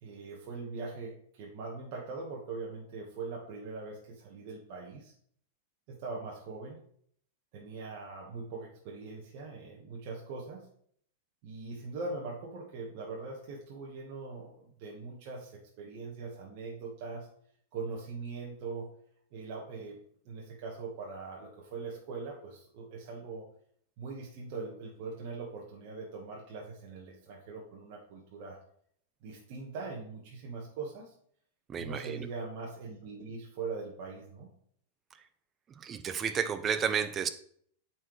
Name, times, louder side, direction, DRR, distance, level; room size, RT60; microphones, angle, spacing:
voice 1, 0.0-5.1 5.9-6.8 7.5-10.7 11.4-17.3 17.7-18.9 19.3-20.0 20.2-23.4 24.0-28.6 29.2-31.1 31.8-34.5, right 4 dB, 55° right, -2 dB, 1.5 m, -41 dB
voice 2, 31.7-32.3 35.7-37.3, right 7 dB, 25° right, 10 dB, 0.7 m, -32 dB
8.6 x 4.5 x 3.3 m, 0.62 s
hypercardioid pair, 125°, 0 cm